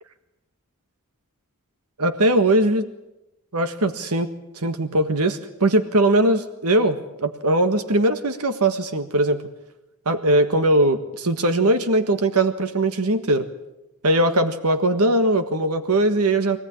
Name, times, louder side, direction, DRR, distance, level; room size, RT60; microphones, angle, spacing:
voice 1, 2.0-2.9 3.5-9.4 10.0-13.5 14.0-16.6, right 1 dB, 85° right, 9 dB, 1.6 m, -20 dB
25.0 x 18.0 x 10.0 m, 0.95 s
head